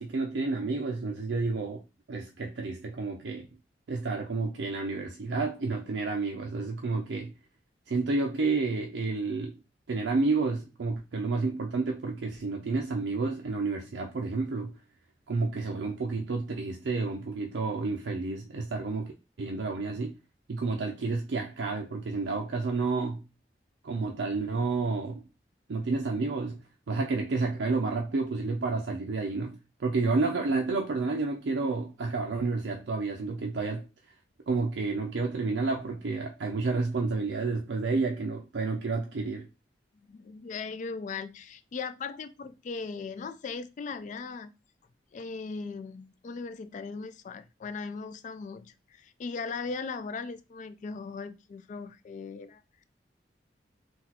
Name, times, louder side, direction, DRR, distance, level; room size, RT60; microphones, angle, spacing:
voice 1, 0.0-1.8 2.1-3.5 3.9-7.3 7.9-9.6 9.9-14.8 15.3-19.1 19.4-20.1 20.5-23.2 23.8-25.2 25.7-26.6 26.9-33.9 34.5-39.5, right 3 dB, 80° right, 0.5 m, -30 dB
voice 2, 39.9-44.5 45.1-52.8, left 4 dB, 45° left, 0.3 m, -38 dB
3.9 x 2.4 x 2.8 m
head